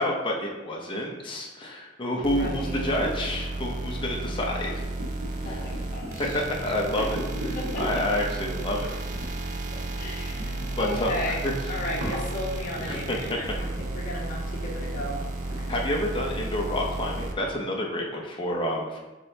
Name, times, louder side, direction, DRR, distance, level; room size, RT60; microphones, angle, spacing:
voice 1, 0.0-4.7 5.5-5.6 6.2-7.1 7.8-9.3 10.8-11.5 12.9-13.4 15.7-19.0, left 1 dB, 25° left, -1 dB, 0.7 m, -29 dB
voice 2, 2.2-3.0 5.4-6.4 7.0-7.1 7.5-8.1 9.7-11.4 11.7-15.2, left 1 dB, 45° left, -4 dB, 1.2 m, -35 dB
sound 1, 2.2-17.3, right 2 dB, 45° right, 0.5 m, -33 dB
sound 2, 4.7-17.3, equal, 85° right, 1.2 m, -40 dB
6.1 x 3.3 x 2.7 m, 1.1 s
head